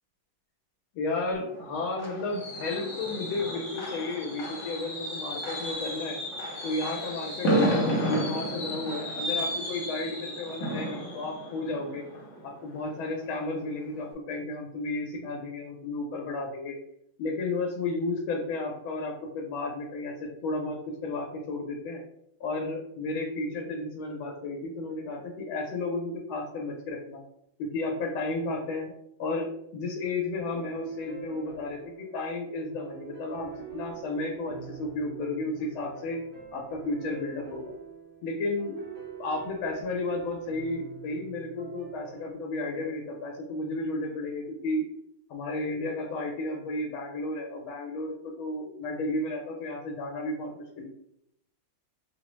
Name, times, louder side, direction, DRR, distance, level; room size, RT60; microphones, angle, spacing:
voice 1, 0.9-6.2 6.6-12.0 12.4-16.8 17.2-22.0 22.4-27.2 27.6-28.9 29.2-36.2 36.5-37.7 38.2-38.8 39.2-44.9 45.3-50.9, left 2 dB, 85° left, 1 dB, 1.4 m, -33 dB
Fireworks, 1.3-13.0 13.4-13.7 14.0-14.1, equal, 55° left, 0.9 m, -32 dB
sound 1, 30.3-42.3, right 6 dB, 50° right, 1.6 m, -46 dB
5.2 x 2.0 x 3.0 m, 0.76 s
omnidirectional pair, 2.2 m